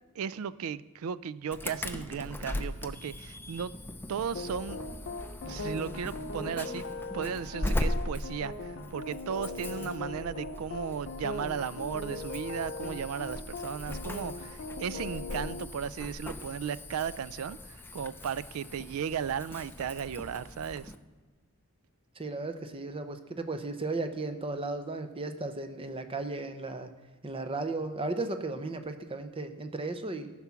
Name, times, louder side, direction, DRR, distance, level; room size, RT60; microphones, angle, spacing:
voice 1, 0.2-3.7 4.1-4.8 5.5-6.9 7.1-20.9, right 7 dB, 70° right, 17 dB, 0.4 m, -35 dB
Insect / Alarm, 1.5-21.0, left 1 dB, 10° left, 0.5 m, -39 dB
sound 1, 4.3-15.6, left 3 dB, 55° left, 0.6 m, -40 dB
voice 2, 22.2-26.9 27.2-30.3, right 2 dB, 25° right, 8 dB, 0.7 m, -35 dB
14.5 x 6.0 x 5.8 m, 1.3 s
head